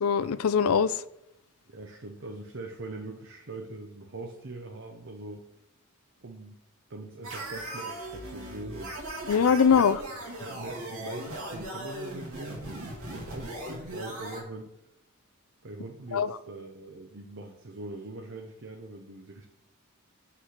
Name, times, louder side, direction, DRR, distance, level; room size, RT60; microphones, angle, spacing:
voice 1, 0.0-1.0 9.3-10.0 16.1-16.4, left 6 dB, 85° left, 0.4 m, -22 dB
voice 2, 1.7-5.5 6.2-6.6 6.9-9.0 9.7-9.8 10.4-12.9 13.1-14.8 15.6-19.5, right 2 dB, 60° right, 0.8 m, -42 dB
sound 1, 7.2-14.4, right 1 dB, 90° right, 2.4 m, -38 dB
5.9 x 5.9 x 6.4 m
head